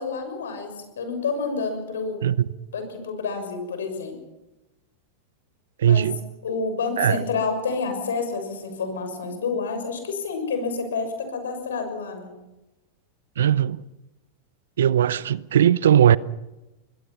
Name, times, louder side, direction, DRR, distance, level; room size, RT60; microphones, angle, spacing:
voice 1, 0.0-2.2 2.7-4.2 5.8-6.1 6.4-12.3, left 4 dB, 75° left, 6.6 m, -29 dB
voice 2, 5.8-6.2 7.0-7.2 13.4-13.8 14.8-16.2, right 10 dB, 75° right, 0.7 m, -19 dB
25.5 x 21.5 x 5.8 m
hypercardioid pair, 95°, 0 cm